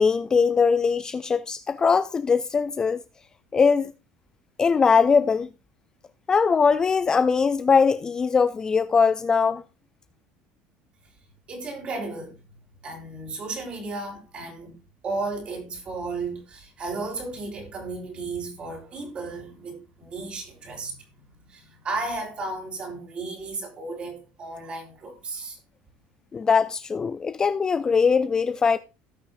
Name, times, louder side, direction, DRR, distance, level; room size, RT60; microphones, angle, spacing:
voice 1, 0.0-3.0 3.5-3.9 4.6-5.5 6.3-9.6 26.3-28.8, left 5 dB, 20° left, 0.4 m, -21 dB
voice 2, 11.5-12.3 12.8-14.7 15.0-21.0 21.5-25.6, right 3 dB, 30° right, 3.5 m, -34 dB
17.5 x 6.0 x 2.6 m
cardioid pair, 150°, 4 cm